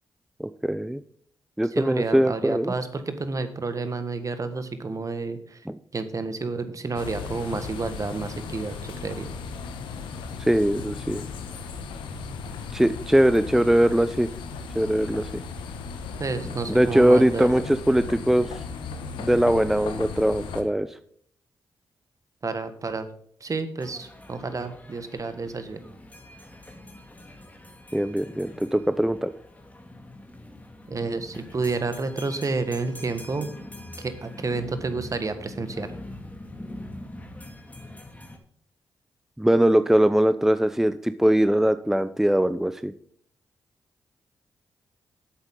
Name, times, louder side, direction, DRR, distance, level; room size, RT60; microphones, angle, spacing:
voice 1, 0.4-1.0 1.6-2.7 5.7-5.8 10.4-11.2 12.7-14.3 14.7-15.4 16.7-18.5 19.2-20.9 27.9-29.3 39.4-42.9, right 1 dB, 5° right, 12 dB, 0.6 m, -21 dB
voice 2, 1.7-5.6 5.9-9.3 16.2-17.6 22.4-23.1 23.4-25.8 30.9-33.5 34.0-35.9, right 3 dB, 40° right, 10 dB, 1.6 m, -30 dB
sound 1, 6.9-20.6, left 5 dB, 80° left, 1.2 m, -36 dB
sound 2, 23.8-38.4, left 1 dB, 20° left, 2.4 m, -43 dB
10.5 x 8.0 x 3.8 m, 0.62 s
supercardioid pair, 45°, 8 cm